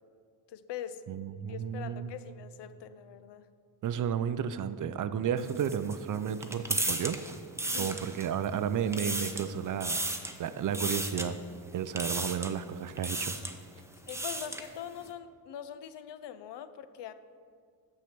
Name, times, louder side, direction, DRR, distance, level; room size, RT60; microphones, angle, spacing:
voice 1, 0.5-1.0 1.5-3.4 7.6-8.0 13.7-17.1, left 10 dB, 55° left, 12 dB, 0.6 m, -43 dB
voice 2, 1.1-2.1 3.8-7.2 7.7-10.0 10.4-11.4 11.7-13.3, right 8 dB, 40° right, 13 dB, 0.5 m, -32 dB
sound 1, 5.4-8.5 8.8-9.5 9.8-10.4 10.7-11.3 12.0-12.6 13.0-13.6 13.9-14.7, right 1 dB, 5° right, 0.7 m, -34 dB
6.6 x 6.1 x 5.9 m, 2.1 s
supercardioid pair, 70°, 50 cm